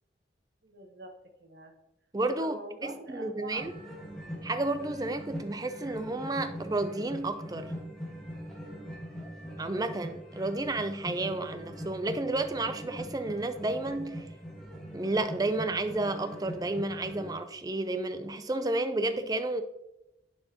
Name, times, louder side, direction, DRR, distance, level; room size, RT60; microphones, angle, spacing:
voice 1, 0.6-1.7 2.4-3.7, right 2 dB, 65° right, 3 dB, 1.0 m, -45 dB
voice 2, 2.1-3.7 4.4-7.7 9.6-14.3 14.9-19.6, right 2 dB, 20° right, 10 dB, 0.4 m, -31 dB
sound 1, 3.6-17.3, equal, 5° left, 1.5 m, -42 dB
10.5 x 4.5 x 2.9 m, 0.89 s
head